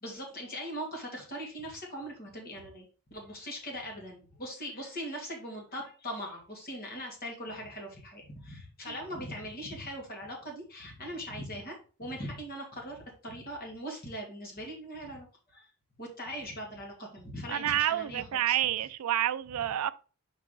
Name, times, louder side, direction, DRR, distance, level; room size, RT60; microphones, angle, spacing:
voice 1, 0.0-15.3 15.5-15.7 16.0-18.6, equal, 40° left, 2.4 m, -40 dB
voice 2, 17.5-19.9, right 12 dB, 80° right, 0.4 m, -29 dB
5.5 x 4.9 x 3.9 m
head